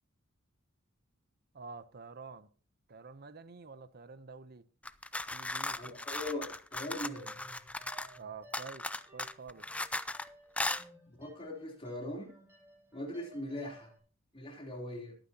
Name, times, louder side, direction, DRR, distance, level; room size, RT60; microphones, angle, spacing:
voice 1, 1.5-2.5 2.9-4.7 5.3-6.0 8.2-8.9 9.1-9.7, right 4 dB, 50° right, 0.8 m, -48 dB
sound 1, 4.8-8.2 8.5-10.3 10.6-10.8, left 2 dB, 5° left, 0.4 m, -37 dB
voice 2, 5.8-7.3 11.1-12.3 12.9-13.9 14.3-15.2, left 1 dB, 25° left, 3.5 m, -41 dB
sound 2, 7.1-14.0, right 2 dB, 10° right, 4.8 m, -58 dB
21.0 x 9.1 x 2.9 m
head